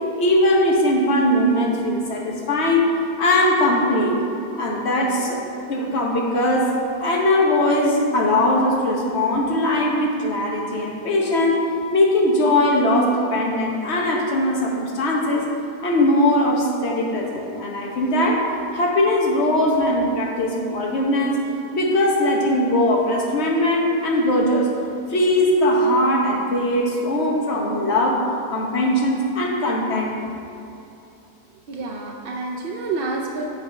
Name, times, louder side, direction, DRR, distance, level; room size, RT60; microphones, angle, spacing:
voice 1, 0.2-4.2 4.6-6.7 7.0-11.6 11.9-15.4 15.8-18.4 18.7-21.4 21.7-24.7 25.1-28.2 28.5-30.3, left 1 dB, 50° left, -1 dB, 1.1 m, -20 dB
voice 2, 31.7-33.5, right 3 dB, 90° right, -1 dB, 0.4 m, -28 dB
8.0 x 3.6 x 5.3 m, 2.7 s
omnidirectional pair, 1.7 m